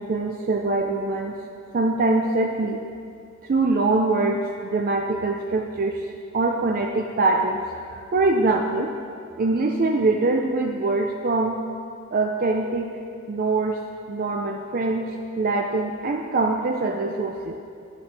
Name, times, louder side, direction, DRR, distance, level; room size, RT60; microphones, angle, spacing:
voice 1, 0.0-1.4 1.7-2.8 3.4-7.6 7.9-8.9 9.4-11.6 12.1-12.9 13.3-13.8 14.1-15.1 15.4-17.6, right 3 dB, 45° right, 2 dB, 0.4 m, -23 dB
10.0 x 8.2 x 3.3 m, 2.4 s
head